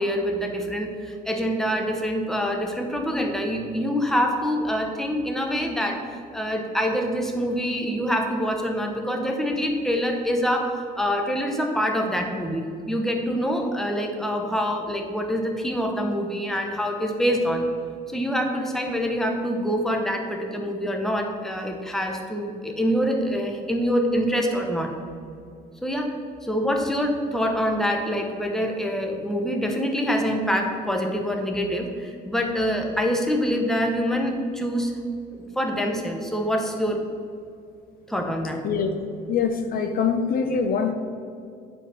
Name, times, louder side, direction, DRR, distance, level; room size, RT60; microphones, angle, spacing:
voice 1, 0.0-6.0 6.3-17.6 18.1-24.9 25.8-26.1 26.4-34.9 35.3-37.0 38.1-38.6, equal, ahead, 2 dB, 1.1 m, -25 dB
voice 2, 39.3-40.9, left 6 dB, 60° left, 6 dB, 0.7 m, -23 dB
8.9 x 4.5 x 5.8 m, 2.4 s
cardioid pair, 110°, 17 cm